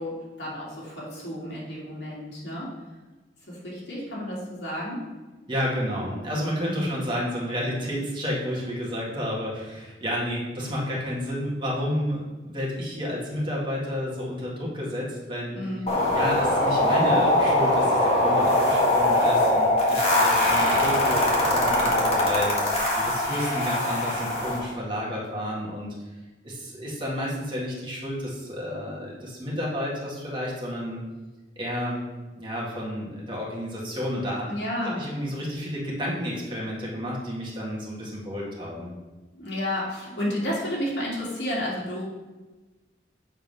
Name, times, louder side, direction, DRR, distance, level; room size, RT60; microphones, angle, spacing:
voice 1, 0.0-2.7 3.5-5.1 6.7-6.9 15.5-15.9 34.5-35.0 39.3-42.0, left 1 dB, 65° left, -6 dB, 2.6 m, -31 dB
voice 2, 5.5-15.6 16.1-26.0 26.4-31.0 31.6-32.1 32.3-34.5 34.9-38.9, equal, 30° right, -5 dB, 2.1 m, -31 dB
sound 1, 15.9-24.6, left 1 dB, 35° left, 1.7 m, -22 dB
7.3 x 4.5 x 5.5 m, 1.2 s
head